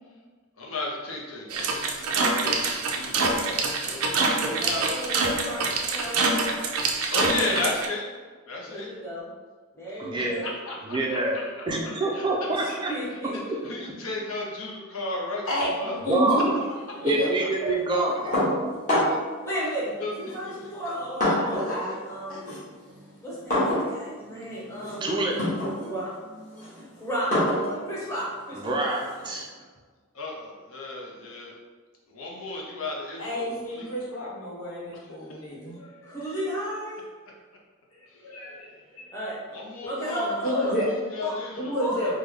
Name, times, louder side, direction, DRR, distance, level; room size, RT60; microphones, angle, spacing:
voice 1, 0.6-3.5 3.8-4.9 7.1-8.0 8.5-8.9 10.2-11.4 12.1-12.3 12.7-13.0 13.6-16.0 20.0-20.7 30.1-31.5 32.1-33.4 33.7-33.9 39.5-40.5 40.9-41.8, left 2 dB, 70° left, -2 dB, 0.6 m, -34 dB
sound 1, 1.5-7.9, right 3 dB, 90° right, 0.4 m, -25 dB
voice 2, 4.4-6.4 8.6-9.3 9.7-10.4 12.5-13.4 15.8-16.0 16.4-16.5 16.9-17.0 19.4-19.9 20.2-22.5 23.2-25.3 25.8-26.1 26.9-28.7 36.0-37.0 39.1-39.4 39.9-40.7 41.2-41.3 41.7-42.1, equal, 10° left, -8 dB, 0.9 m, -34 dB
voice 3, 10.0-10.4 10.9-11.4 11.7-12.9 13.5-13.6 16.1-16.5 17.0-18.7 25.0-25.4 28.6-29.5, right 2 dB, 20° right, -1 dB, 0.3 m, -26 dB
voice 4, 16.0-16.5 17.0-17.3 17.6-17.7 17.9-18.4 21.3-21.9 22.3-22.4 33.2-35.9 38.2-39.0 39.8-39.9 40.4-40.8 41.6-42.2, equal, 90° left, -5 dB, 1.0 m, -30 dB
sound 2, 18.3-19.3 20.2-21.8 22.1-29.4, left 1 dB, 35° left, 1.2 m, -28 dB
3.3 x 2.1 x 3.4 m, 1.5 s
head